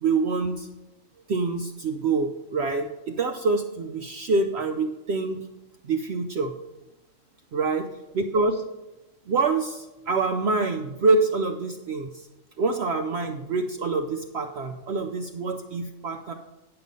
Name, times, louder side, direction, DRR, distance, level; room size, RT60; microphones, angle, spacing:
voice 1, 0.0-0.7 1.3-5.4 5.8-6.5 7.5-7.8 8.1-8.6 9.3-12.3 12.6-16.3, right 3 dB, 60° right, 6 dB, 0.8 m, -26 dB
9.6 x 6.8 x 5.2 m, 1.0 s
omnidirectional pair, 1.4 m